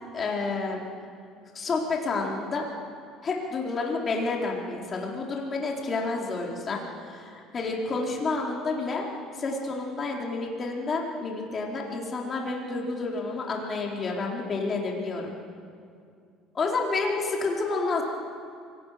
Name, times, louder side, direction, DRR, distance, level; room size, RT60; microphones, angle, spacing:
voice 1, 0.1-0.8 1.5-2.6 3.2-9.1 9.3-15.3 16.5-18.0, left 3 dB, 35° left, -1 dB, 4.2 m, -29 dB
24.5 x 18.0 x 6.7 m, 2.3 s
cardioid pair, 115°, 0 cm